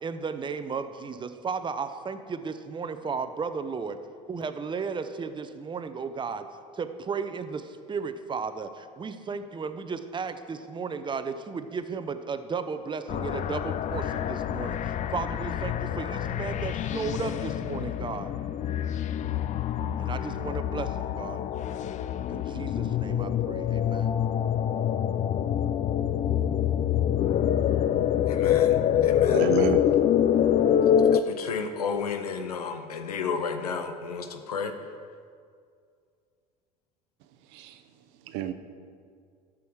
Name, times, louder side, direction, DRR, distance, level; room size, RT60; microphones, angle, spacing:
voice 1, 0.0-4.0 4.3-6.5 6.7-18.3 20.0-21.4 22.3-24.2, right 5 dB, 25° right, 10 dB, 0.7 m, -34 dB
sound 1, 13.1-31.2, left 10 dB, 40° left, 0.4 m, -26 dB
voice 2, 28.3-29.5 31.1-34.7, left 5 dB, 90° left, 8 dB, 0.8 m, -32 dB
voice 3, 29.3-29.8 37.5-37.8 38.3-38.5, right 11 dB, 65° right, 10 dB, 0.8 m, -29 dB
12.5 x 6.3 x 4.6 m, 2.2 s
hypercardioid pair, 75°, 19 cm